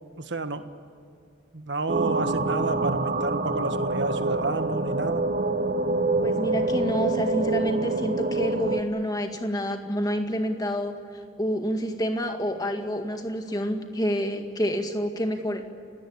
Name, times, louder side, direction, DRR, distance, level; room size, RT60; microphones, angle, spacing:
voice 1, 0.2-0.7 1.5-5.2, right 2 dB, 65° right, 9 dB, 1.5 m, -30 dB
sound 1, 1.9-8.8, right 2 dB, 40° right, 1.1 m, -26 dB
voice 2, 6.2-11.0 11.4-15.6, equal, 20° left, 5 dB, 2.0 m, -28 dB
30.0 x 17.5 x 8.7 m, 2.4 s
head